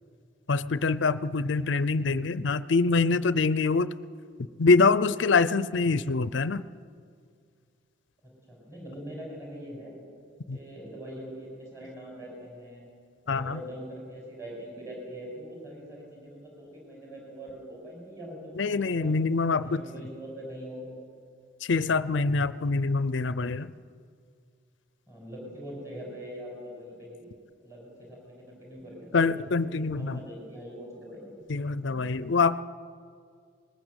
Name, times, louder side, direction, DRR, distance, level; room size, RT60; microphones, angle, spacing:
voice 1, 0.5-3.9 4.6-6.6 10.5-10.6 13.3-13.6 18.6-19.8 21.6-23.7 29.1-30.2 31.5-32.6, left 4 dB, 65° left, 16 dB, 0.5 m, -25 dB
voice 2, 1.6-2.0 8.5-9.9 10.5-12.9 13.3-19.1 19.6-20.9 22.1-22.3 25.1-27.3 27.6-29.5 29.7-31.3 31.9-32.0, equal, 15° right, -2 dB, 6.1 m, -43 dB
20.0 x 19.5 x 8.1 m, 2.2 s
head